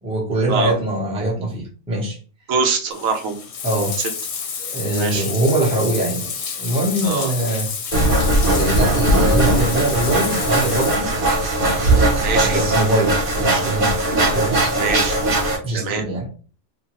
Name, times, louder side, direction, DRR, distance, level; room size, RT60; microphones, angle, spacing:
voice 1, 0.0-2.2 3.6-3.9 4.6-6.3 6.6-7.7 8.5-11.1 12.4-14.7 15.6-16.3, right 1 dB, 5° right, -3 dB, 0.6 m, -22 dB
voice 2, 2.5-3.4 5.0-5.3 7.0-7.3 12.2-12.6 14.1-14.3 14.7-15.2 15.7-16.0, right 4 dB, 75° right, 4 dB, 1.0 m, -24 dB
Bathtub (filling or washing), 2.9-10.9, left 6 dB, 65° left, 0.8 m, -30 dB
sound 1, 7.9-15.6, right 1 dB, 40° right, 1.0 m, -19 dB
3.0 x 2.1 x 2.9 m, 0.38 s
omnidirectional pair, 1.5 m